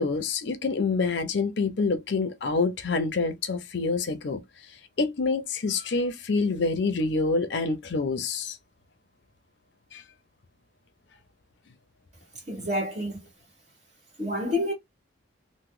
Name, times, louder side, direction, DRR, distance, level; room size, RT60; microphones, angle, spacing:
voice 1, 0.0-4.4 5.0-8.6 9.9-10.0, left 4 dB, 55° left, 0.5 m, -27 dB
voice 2, 12.5-13.2 14.2-14.7, left 1 dB, 35° right, 1.4 m, -28 dB
2.9 x 2.1 x 3.6 m
head